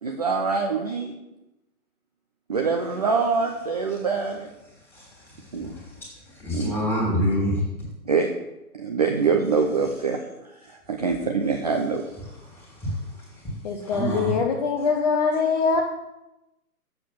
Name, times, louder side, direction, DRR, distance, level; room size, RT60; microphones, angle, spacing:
voice 1, 0.0-1.1 2.5-4.5 5.5-5.7 6.5-6.7 8.1-8.3 8.7-10.2 10.9-12.0, right 5 dB, 30° right, 3 dB, 0.5 m, -24 dB
voice 2, 4.9-6.1 6.3-7.7 12.4-13.4 13.8-14.3, equal, 5° left, -4 dB, 2.4 m, -28 dB
voice 3, 13.6-15.8, left 5 dB, 25° left, 0 dB, 0.7 m, -23 dB
7.2 x 6.7 x 5.9 m, 0.93 s
figure-of-eight pair, 145°, 45 cm